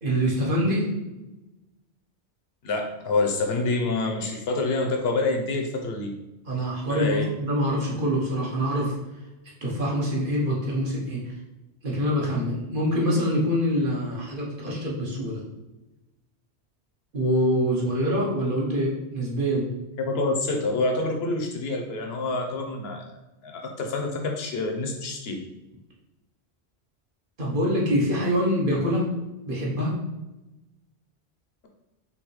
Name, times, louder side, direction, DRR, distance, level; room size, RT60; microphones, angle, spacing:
voice 1, 0.0-0.9 6.5-8.9 9.6-11.2 11.8-15.4 17.1-19.7 27.4-29.1 29.5-29.9, equal, 55° right, -4 dB, 1.2 m, -25 dB
voice 2, 2.6-6.1 6.9-7.3 20.0-23.0 23.4-25.4, left 3 dB, 70° left, 2 dB, 0.9 m, -27 dB
5.4 x 2.6 x 3.1 m, 1.0 s
omnidirectional pair, 1.1 m